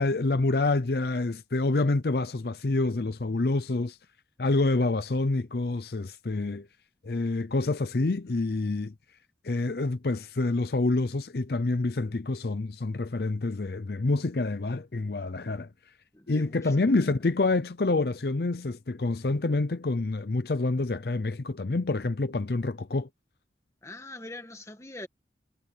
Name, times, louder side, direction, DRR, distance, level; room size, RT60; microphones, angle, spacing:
voice 1, 0.0-4.0 4.4-6.7 7.0-8.9 9.4-15.7 16.3-23.1, left 2 dB, 55° left, 0.6 m, -27 dB
voice 2, 16.1-16.7 23.8-25.1, left 2 dB, 15° left, 1.8 m, -43 dB
head